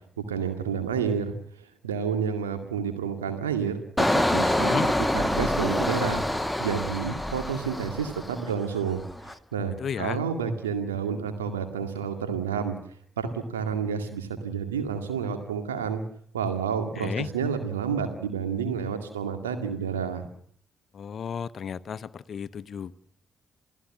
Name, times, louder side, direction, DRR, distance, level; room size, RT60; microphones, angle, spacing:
voice 1, 0.2-1.3 1.8-4.9 5.1-6.2 6.6-9.0 9.5-12.7 13.2-16.0 16.3-20.2, right 6 dB, 85° right, 6 dB, 2.0 m, -29 dB
Engine, 4.0-8.6 9.0-9.3, left 1 dB, 5° left, 1.4 m, -26 dB
voice 2, 4.4-4.9 9.8-10.2 17.0-17.3 20.9-22.9, left 7 dB, 55° left, 17 dB, 0.8 m, -33 dB
28.5 x 16.5 x 7.3 m, 0.65 s
hypercardioid pair, 40°, 0 cm